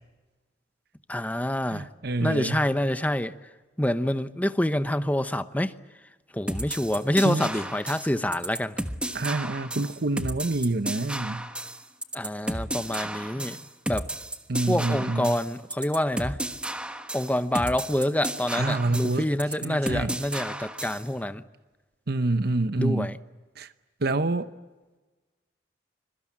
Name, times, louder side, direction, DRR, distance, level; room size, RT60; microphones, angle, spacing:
voice 1, 1.1-1.9 2.2-3.3 3.8-5.7 6.3-8.8 12.1-13.6 13.9-14.1 14.7-16.4 17.1-21.4 22.8-23.2, left 1 dB, 10° left, 0.9 m, -27 dB
voice 2, 1.7-2.6 7.2-7.5 9.1-11.5 14.5-15.4 18.5-19.3 19.6-20.1 22.1-23.1 23.6-23.7 24.0-24.5, right 2 dB, 60° right, 0.9 m, -27 dB
sound 1, 6.5-21.1, right 1 dB, 5° right, 1.3 m, -33 dB
25.5 x 23.0 x 8.6 m
head